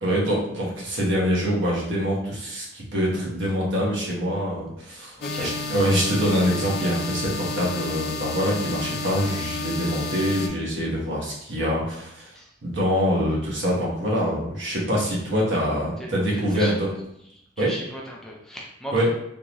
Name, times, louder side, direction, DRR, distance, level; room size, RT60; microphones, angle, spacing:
voice 1, 0.0-12.3 12.6-16.9 17.6-17.7 18.9-19.1, equal, 65° right, -4 dB, 1.2 m, -25 dB
sound 1, 5.2-10.5, left 4 dB, 55° left, 0.5 m, -31 dB
voice 2, 5.2-5.6 12.4-12.5 16.0-16.8 17.2-19.1, equal, 5° left, -3 dB, 0.5 m, -37 dB
3.6 x 2.7 x 3.0 m, 0.77 s
head